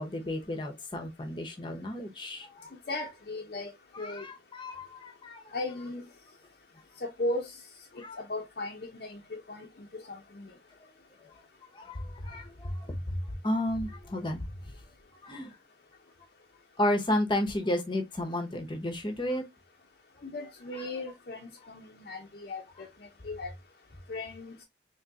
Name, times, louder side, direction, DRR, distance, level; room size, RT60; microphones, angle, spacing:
voice 1, 0.0-2.7 3.9-5.5 8.0-8.2 10.7-10.8 11.2-11.4 11.7-14.7 15.2-15.6 16.8-19.4, left 1 dB, 25° left, 0.9 m, -33 dB
voice 2, 2.9-3.7 4.0-4.3 5.5-6.0 7.0-7.5 7.9-10.5 20.2-22.9 23.2-23.5 24.1-24.5, left 2 dB, 55° left, 0.6 m, -37 dB
3.7 x 2.9 x 2.8 m
head